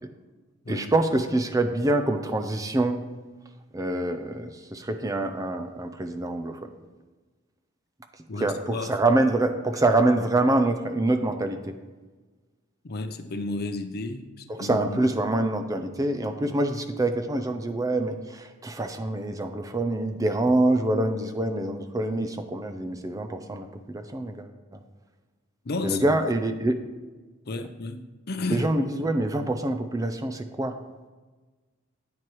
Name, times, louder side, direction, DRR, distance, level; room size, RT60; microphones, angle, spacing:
voice 1, 0.7-3.0 3.7-6.7 8.4-11.7 14.5-23.7 23.9-24.8 25.8-26.7 28.5-30.8, right 2 dB, 15° right, 7 dB, 0.4 m, -25 dB
voice 2, 8.3-8.9 12.8-15.0 25.6-26.0 27.5-28.7, left 3 dB, 50° left, 8 dB, 0.6 m, -32 dB
9.3 x 7.6 x 3.1 m, 1.3 s
head